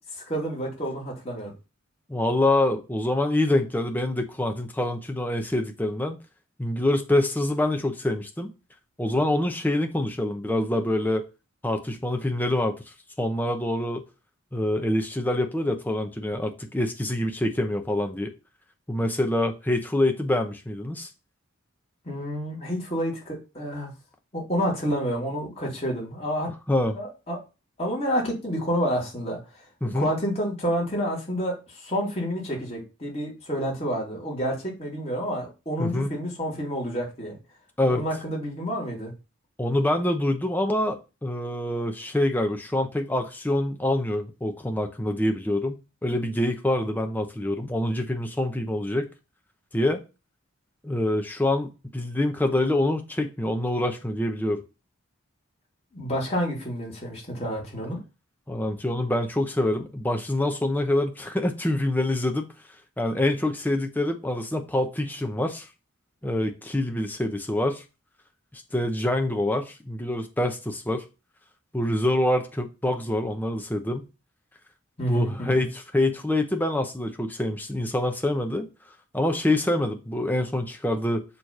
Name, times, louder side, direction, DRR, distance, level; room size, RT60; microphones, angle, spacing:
voice 1, 0.1-1.5 22.0-23.9 24.3-26.5 26.9-27.4 27.8-29.4 29.9-37.4 37.9-39.1 55.9-58.0 75.0-75.6, equal, 30° left, 2.6 m, -29 dB
voice 2, 2.1-6.2 6.6-8.5 9.0-11.3 11.6-12.8 13.2-14.0 14.5-18.3 18.9-21.1 26.5-27.0 29.8-30.1 35.8-36.1 37.8-38.0 39.6-49.1 49.7-50.0 50.8-54.6 58.5-62.5 63.0-65.7 66.2-67.8 68.5-71.0 71.7-74.1 75.1-78.7 79.1-81.2, left 1 dB, 10° left, 0.8 m, -26 dB
6.8 x 3.2 x 5.4 m
head